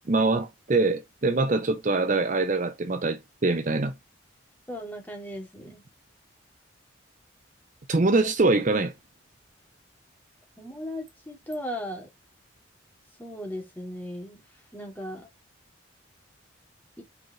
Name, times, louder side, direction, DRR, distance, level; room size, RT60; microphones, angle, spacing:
voice 1, 0.0-3.9 7.9-8.9, right 3 dB, 40° right, 0.6 m, -24 dB
voice 2, 4.7-5.8 10.6-12.1 13.2-14.4 14.7-15.3 17.0-17.1, equal, 10° left, 2.4 m, -37 dB
5.0 x 4.7 x 5.9 m
head